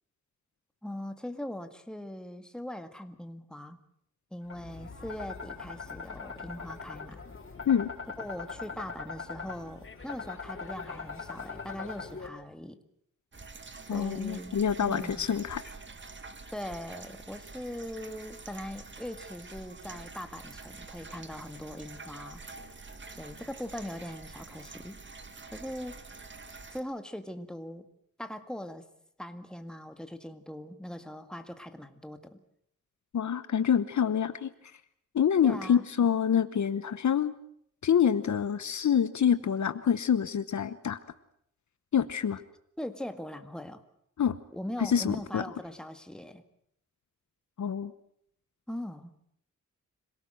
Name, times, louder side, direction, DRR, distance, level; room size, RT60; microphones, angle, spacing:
voice 1, 0.8-3.8 4.3-7.2 8.2-12.8 13.9-15.3 16.5-22.4 23.1-25.0 25.5-26.0 26.7-27.9 28.2-28.9 29.2-32.4 35.4-35.9 42.8-43.8 44.5-46.4 48.7-49.3, left 1 dB, ahead, 8 dB, 1.9 m, -40 dB
sound 1, 4.5-12.3, left 4 dB, 40° left, 4.3 m, -41 dB
sound 2, 13.3-26.8, right 3 dB, 35° right, 1.9 m, -47 dB
voice 2, 13.9-15.6 33.1-34.5 35.1-37.3 37.8-41.0 41.9-42.4 44.2-44.4 44.8-45.4 47.6-47.9, left 8 dB, 60° left, 13 dB, 1.0 m, -26 dB
26.5 x 18.0 x 7.8 m, 0.70 s
cardioid pair, 95°, 32 cm